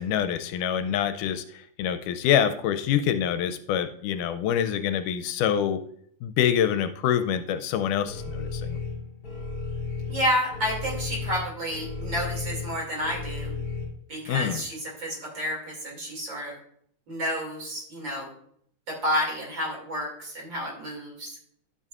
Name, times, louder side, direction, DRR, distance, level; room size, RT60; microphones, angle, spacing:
voice 1, 0.0-5.8 6.2-8.8 14.3-14.6, left 9 dB, 80° left, 10 dB, 2.0 m, -26 dB
sound 1, 8.1-13.8, left 4 dB, 35° left, 2.7 m, -34 dB
voice 2, 10.1-13.5 14.1-16.5 17.1-18.3 18.9-21.4, equal, 35° right, -1 dB, 2.8 m, -30 dB
12.5 x 7.0 x 2.4 m, 0.67 s
omnidirectional pair, 3.7 m